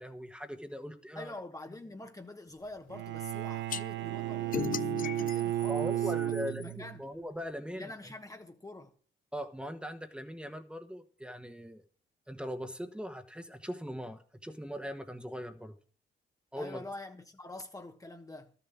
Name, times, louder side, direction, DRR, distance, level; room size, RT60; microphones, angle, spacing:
voice 1, 0.0-1.3 5.7-7.9 9.3-11.8 12.3-15.8 16.5-16.8, equal, 5° right, 1.4 m, -40 dB
voice 2, 1.1-6.3 6.6-7.0 7.8-8.9 16.6-18.5, left 2 dB, 15° left, 1.2 m, -46 dB
Bowed string instrument, 2.9-7.0, right 14 dB, 65° right, 0.7 m, -33 dB
sound 1, 3.7-3.8 4.5-6.7, left 9 dB, 45° left, 0.5 m, -37 dB
12.5 x 6.9 x 7.3 m
cardioid pair, 90°, 20 cm